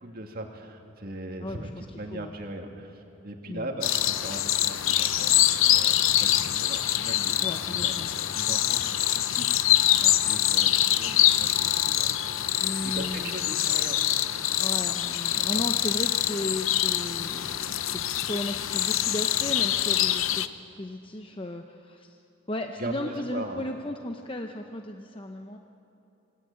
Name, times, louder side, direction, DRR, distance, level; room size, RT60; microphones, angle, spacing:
voice 1, 0.0-7.3 7.7-12.4 12.8-14.0 15.5-15.8 22.8-23.6, right 1 dB, 40° right, 2 dB, 2.4 m, -39 dB
voice 2, 1.4-1.9 2.1-2.3 3.5-3.7 7.4-8.1 12.6-13.8 14.5-20.4 20.7-22.2 22.5-25.6, left 1 dB, 25° left, 4 dB, 0.8 m, -35 dB
sound 1, 3.8-20.5, left 12 dB, 70° left, 0.7 m, -25 dB
26.5 x 19.0 x 8.6 m, 3.0 s
head